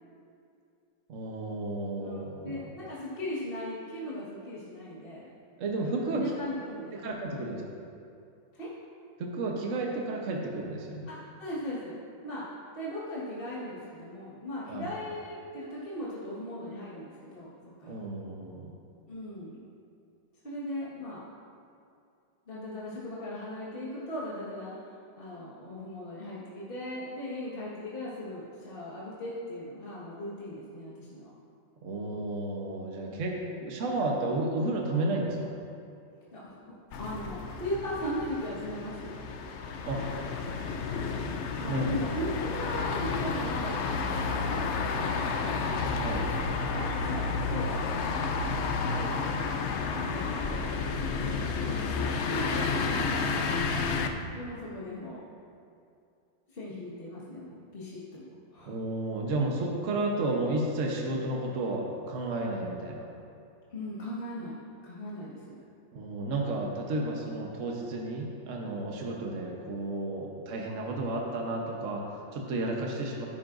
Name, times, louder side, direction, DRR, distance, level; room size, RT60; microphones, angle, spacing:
voice 1, 1.1-2.5 5.6-6.2 6.9-7.6 9.2-11.1 14.7-14.9 17.9-18.7 31.8-35.5 39.8-40.0 41.7-42.0 45.9-46.6 58.7-63.1 65.9-73.3, right 2 dB, 50° right, -1 dB, 1.3 m, -32 dB
voice 2, 2.0-5.3 5.8-7.0 7.3-7.6 8.5-8.7 11.1-12.4 12.7-18.0 19.1-19.5 20.4-21.2 22.5-31.3 33.1-33.5 36.3-36.6 37.0-39.1 41.6-45.6 46.7-47.8 48.9-49.2 49.9-55.2 56.5-58.8 63.7-64.6 64.8-65.6, left 1 dB, 30° left, -8 dB, 1.8 m, -38 dB
sound 1, 36.9-54.1, left 4 dB, 65° left, 0.7 m, -31 dB
15.5 x 9.7 x 2.6 m, 2.5 s
omnidirectional pair, 1.9 m